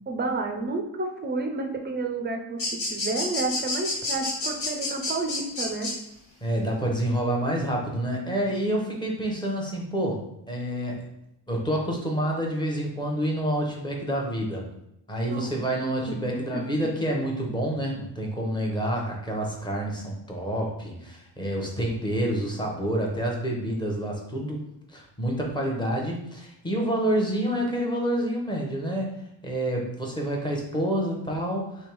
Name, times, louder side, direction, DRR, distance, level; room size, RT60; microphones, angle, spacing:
voice 1, 0.1-2.6 2.9-5.9 15.3-15.5 16.1-16.6 17.1-17.2, right 3 dB, 25° right, 3 dB, 0.5 m, -30 dB
sound 1, 2.6-5.9, left 2 dB, 90° left, 1.8 m, -29 dB
voice 2, 6.4-11.1 11.5-14.7 15.1-24.6 24.9-29.1 29.4-31.9, right 1 dB, 10° left, -1 dB, 0.8 m, -28 dB
3.4 x 3.3 x 4.6 m, 0.80 s
cardioid pair, 175°, 44 cm